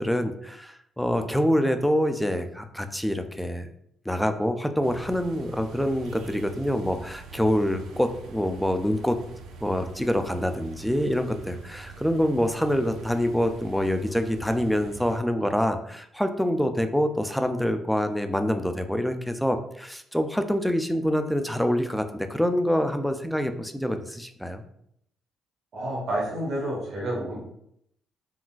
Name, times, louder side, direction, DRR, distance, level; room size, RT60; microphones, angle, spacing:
voice 1, 0.0-3.7 4.1-9.2 9.6-24.6, equal, ahead, 7 dB, 0.3 m, -26 dB
sound 1, 4.8-15.2, right 3 dB, 90° right, 0.3 m, -44 dB
voice 2, 25.7-27.4, right 1 dB, 65° right, -3 dB, 1.1 m, -29 dB
3.8 x 2.2 x 2.3 m, 0.72 s
cardioid pair, 90°, 0 cm